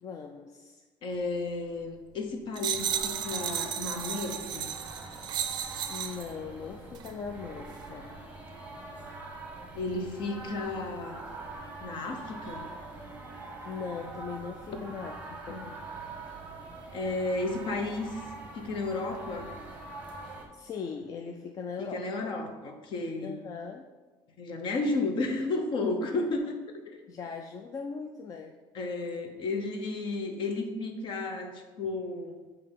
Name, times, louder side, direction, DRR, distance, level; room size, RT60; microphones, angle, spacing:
voice 1, 0.0-0.8 5.9-8.1 13.7-15.2 15.5-15.6 20.5-22.1 23.2-23.9 26.0-26.4 27.1-28.6, left 5 dB, 35° left, 3 dB, 0.4 m, -39 dB
voice 2, 1.0-4.7 9.7-11.2 11.8-12.7 15.5-15.7 16.9-18.2 18.5-19.5 21.8-23.4 24.4-26.5 26.9-27.0 28.7-32.4, left 2 dB, 55° left, 4 dB, 0.9 m, -33 dB
sound 1, 2.6-6.3 7.0-7.1, right 9 dB, 45° right, 0.4 m, -34 dB
sound 2, 2.7-20.4, right 2 dB, 15° right, 1.1 m, -44 dB
7.7 x 2.8 x 5.2 m, 1.3 s
cardioid pair, 155°, 10 cm